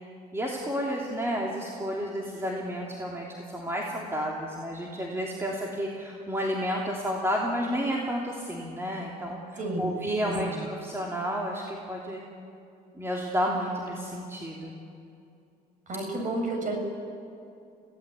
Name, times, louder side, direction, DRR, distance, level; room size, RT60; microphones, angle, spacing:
voice 1, 0.3-10.5 10.8-12.2 13.0-14.7, equal, 15° right, -2 dB, 3.1 m, -31 dB
voice 2, 9.6-9.9 10.2-10.6 15.9-16.8, right 2 dB, 50° right, 3 dB, 6.3 m, -31 dB
26.5 x 17.5 x 8.4 m, 2.6 s
cardioid pair, 110°, 17 cm